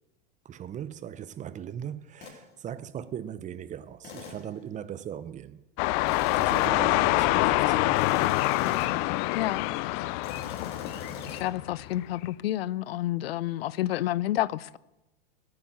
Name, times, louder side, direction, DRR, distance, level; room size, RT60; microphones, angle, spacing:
voice 1, 0.4-5.6 6.3-8.1, right 9 dB, 25° right, 0.7 m, -39 dB
sound 1, 2.2-2.4 4.0-4.5 6.1-6.9 8.0-9.1 10.2-11.4, left 4 dB, 35° left, 4.4 m, -42 dB
sound 2, 5.8-12.0, left 19 dB, 50° left, 0.6 m, -26 dB
voice 2, 9.3-9.7 11.2-14.8, left 14 dB, 90° left, 0.6 m, -29 dB
15.5 x 8.8 x 9.2 m
supercardioid pair, 120°, 29 cm